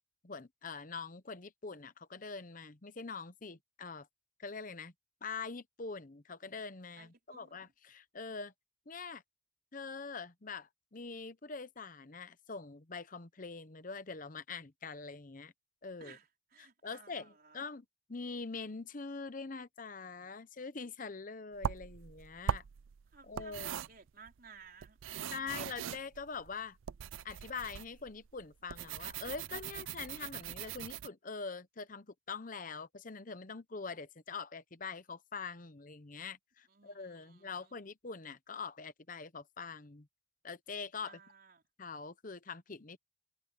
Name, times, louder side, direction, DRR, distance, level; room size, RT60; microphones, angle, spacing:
voice 1, 0.2-4.1 4.4-4.9 5.2-8.5 8.9-9.2 9.7-15.5 15.8-16.2 16.6-22.6 23.2-23.8 25.3-26.8 27.2-40.1 40.4-41.2 41.8-43.0, left 4 dB, 40° left, 0.9 m, -44 dB
voice 2, 7.0-7.7 16.0-17.6 23.1-25.8 36.7-37.8 41.0-41.6, right 5 dB, 50° right, 4.3 m, -58 dB
sound 1, 21.5-31.1, right 8 dB, 80° right, 0.4 m, -41 dB
head